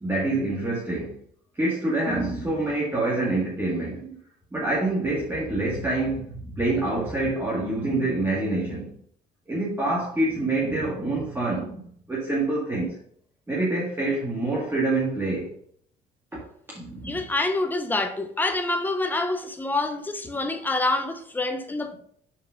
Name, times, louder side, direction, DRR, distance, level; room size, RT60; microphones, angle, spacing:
voice 1, 0.0-1.1 1.6-4.2 4.5-8.9 9.5-11.8 12.1-13.0 13.5-15.5 16.3-16.4 16.7-17.2, right 2 dB, 15° right, 2.0 m, -26 dB
voice 2, 17.0-21.9, left 2 dB, 10° left, 0.9 m, -26 dB
5.9 x 4.6 x 5.1 m
cardioid pair, 110°, 17 cm